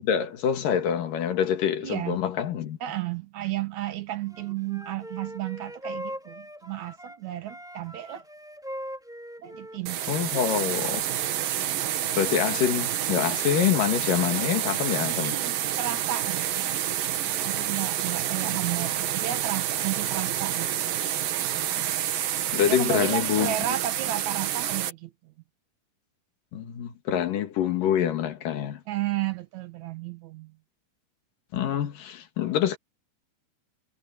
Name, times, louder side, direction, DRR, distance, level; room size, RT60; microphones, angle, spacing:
voice 1, 0.0-2.8 10.1-11.0 12.2-15.3 22.5-23.5 26.5-28.8 31.5-32.8, left 9 dB, 80° left, 3.5 m, -26 dB
voice 2, 1.8-2.2 2.8-8.2 9.4-10.0 15.1-16.7 17.4-20.7 22.7-25.3 28.9-30.5, right 13 dB, 65° right, 2.4 m, -33 dB
Wind instrument woodwind instrument, 4.3-7.2 7.5-11.0, equal, ahead, 4.6 m, -41 dB
sound 1, 9.9-24.9, right 11 dB, 85° right, 3.2 m, -28 dB
omnidirectional pair, 3.9 m